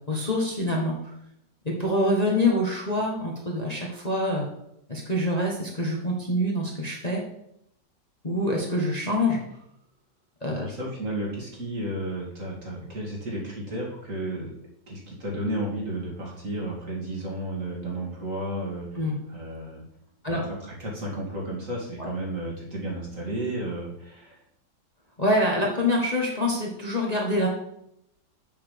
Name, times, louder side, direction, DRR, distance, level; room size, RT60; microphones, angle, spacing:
voice 1, 0.1-1.1 1.6-4.5 4.9-7.2 8.2-9.4 10.4-10.7 18.9-19.2 20.2-20.4 22.0-22.1 25.2-27.5, left 1 dB, 25° left, -2 dB, 1.4 m, -25 dB
voice 2, 10.6-14.5 14.9-19.0 19.3-19.8 20.2-24.4, right 1 dB, 45° right, -3 dB, 2.7 m, -33 dB
7.2 x 5.8 x 6.8 m, 0.76 s
omnidirectional pair, 1.9 m